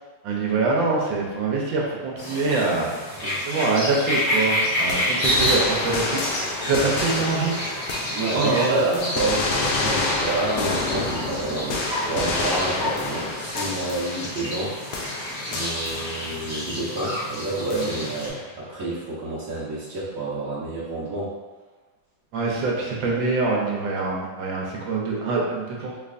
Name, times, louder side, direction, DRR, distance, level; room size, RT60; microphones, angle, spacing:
voice 1, 0.2-2.9 3.4-6.2 6.6-7.7 8.3-8.8 22.3-25.9, right 3 dB, 75° right, -3 dB, 1.4 m, -24 dB
sound 1, 2.2-18.3, equal, 30° left, 0.9 m, -29 dB
sound 2, 4.9-8.6 8.9-14.7 14.9-16.6 17.7-18.4, left 3 dB, 90° left, 0.7 m, -28 dB
voice 2, 6.7-7.2 8.1-14.8 15.5-21.3, right 2 dB, 50° right, -13 dB, 1.1 m, -29 dB
4.0 x 3.2 x 2.5 m, 1.3 s
omnidirectional pair, 2.1 m